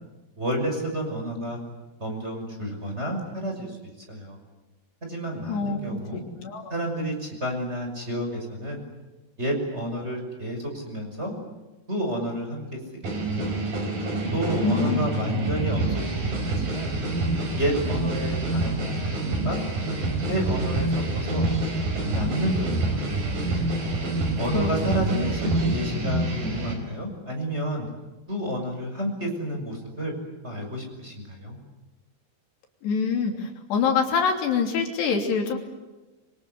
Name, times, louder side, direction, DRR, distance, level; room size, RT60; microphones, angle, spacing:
voice 1, 0.4-1.6 2.0-4.4 5.1-6.2 6.7-8.8 9.4-11.3 11.9-12.8 13.2-13.6 14.3-17.0 17.6-19.2 19.4-19.6 20.3-21.5 22.1-23.4 24.4-27.9 28.3-30.1 30.4-31.6, equal, 15° right, 3 dB, 6.1 m, -30 dB
voice 2, 5.5-6.7 14.6-15.0 24.5-25.3 32.8-35.6, left 5 dB, 75° left, 3 dB, 5.2 m, -26 dB
sound 1, 13.0-26.7, right 2 dB, 55° right, 6.3 m, -27 dB
26.5 x 25.0 x 8.1 m, 1.1 s
omnidirectional pair, 4.9 m